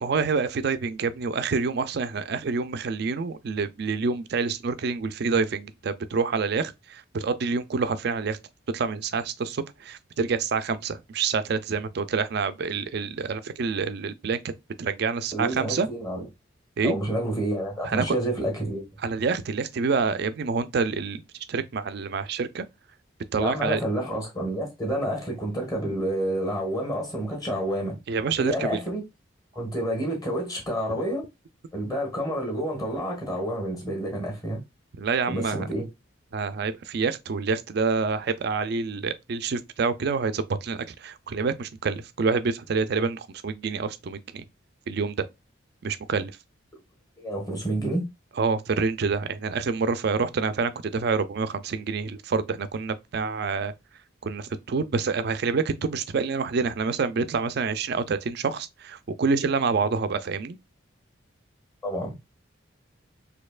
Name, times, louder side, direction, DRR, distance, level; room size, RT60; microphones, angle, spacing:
voice 1, 0.0-8.4 8.7-14.4 14.8-15.9 16.8-17.0 17.8-18.2 19.0-21.2 21.5-22.7 23.3-23.8 28.1-28.8 35.0-35.7 36.3-44.4 44.9-45.3 45.8-46.3 48.4-53.7 54.2-60.6, right 4 dB, 55° right, 0.4 m, -27 dB
voice 2, 15.3-16.2 16.8-18.8 23.4-28.0 28.4-29.0 29.5-31.2 31.7-34.6 35.3-35.8 47.2-48.1 61.8-62.1, right 1 dB, 20° left, 1.4 m, -29 dB
4.3 x 2.7 x 2.4 m
head